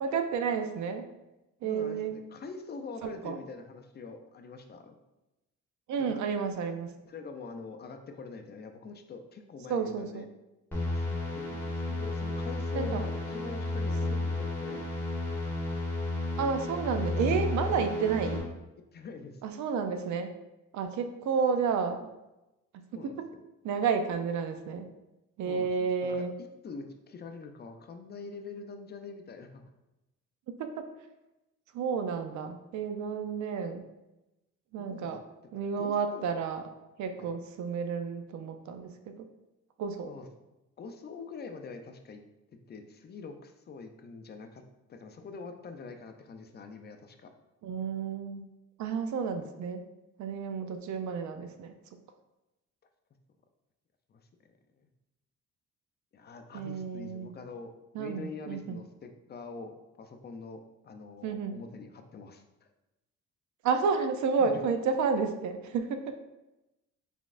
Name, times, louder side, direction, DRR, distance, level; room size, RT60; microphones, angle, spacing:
voice 1, 0.0-1.1 1.6-2.2 3.2-3.4 5.9-6.9 9.7-10.2 12.8-13.0 14.1-14.3 16.4-18.5 19.4-20.3 20.7-22.1 23.6-24.9 25.4-26.3 30.5-30.8 31.7-33.8 34.7-35.2 35.5-36.6 37.0-39.3 39.8-40.1 47.6-48.5 48.8-49.8 50.2-51.7 56.5-57.3 57.9-58.8 61.2-61.5 63.6-66.2, right 5 dB, 70° right, 7 dB, 0.5 m, -31 dB
voice 2, 1.6-5.0 6.0-6.2 7.0-10.3 10.8-15.0 18.9-19.4 22.9-23.4 25.5-26.2 26.6-29.6 34.9-35.2 35.5-36.3 37.2-37.3 40.1-40.3 40.8-42.2 42.7-44.6 44.9-47.3 54.1-54.2 56.1-57.7 58.0-62.4 64.4-64.6, left 4 dB, 35° left, 6 dB, 0.5 m, -44 dB
sound 1, 10.7-18.4, left 2 dB, 10° left, 1.4 m, -32 dB
3.9 x 3.5 x 2.5 m, 0.98 s
cardioid pair, 90°, 30 cm